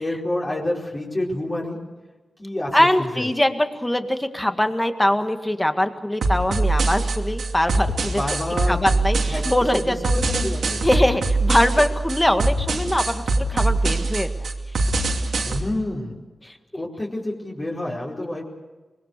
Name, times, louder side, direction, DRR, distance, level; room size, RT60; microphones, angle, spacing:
voice 1, 0.0-1.8 2.4-3.3 8.0-8.8 9.3-9.4 9.7-10.8 15.4-16.1 16.7-18.4, left 1 dB, 30° left, -4 dB, 4.7 m, -28 dB
voice 2, 2.7-8.2 8.7-10.1 10.4-10.6 10.8-14.5 16.4-16.6 18.2-18.3, left 1 dB, 10° left, 7 dB, 1.8 m, -22 dB
sound 1, 6.2-15.6, right 2 dB, 85° right, 2.8 m, -23 dB
25.0 x 21.0 x 6.7 m, 1.2 s
cardioid pair, 70°, 0 cm